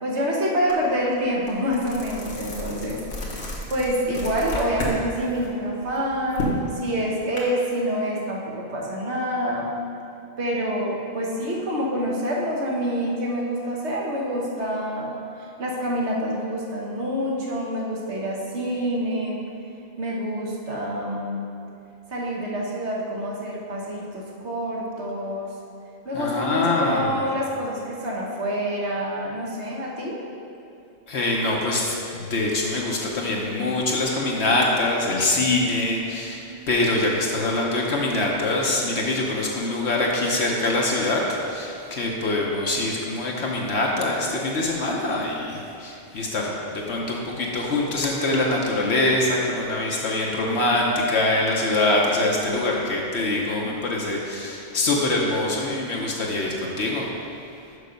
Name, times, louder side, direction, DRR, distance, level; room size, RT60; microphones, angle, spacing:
voice 1, 0.0-3.0 3.7-9.7 10.4-15.1 15.4-19.4 20.0-21.4 22.1-25.5 26.0-30.2, equal, 65° right, -3 dB, 1.5 m, -27 dB
sound 1, 0.7-0.8 1.2-5.0 5.3-7.4, left 1 dB, 80° left, 1.6 m, -32 dB
voice 2, 26.1-27.2 31.1-36.4 36.7-57.1, left 2 dB, 65° left, -2 dB, 1.1 m, -24 dB
6.7 x 5.8 x 5.1 m, 2.7 s
omnidirectional pair, 1.2 m